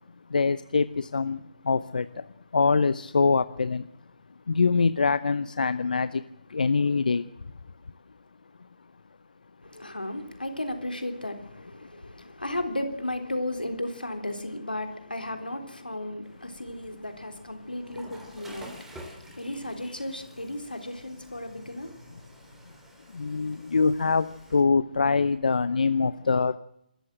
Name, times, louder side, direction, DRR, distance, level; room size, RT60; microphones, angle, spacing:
voice 1, 0.3-2.3 2.5-3.9 4.5-6.2 6.5-7.3 23.1-26.6, left 4 dB, 65° left, 0.8 m, -24 dB
voice 2, 9.6-22.3 22.7-22.8, left 1 dB, 90° left, 3.6 m, -35 dB
Water / Toilet flush, 16.2-24.6, right 1 dB, 5° right, 3.3 m, -51 dB
27.0 x 14.0 x 7.6 m
figure-of-eight pair, 140°, 5 cm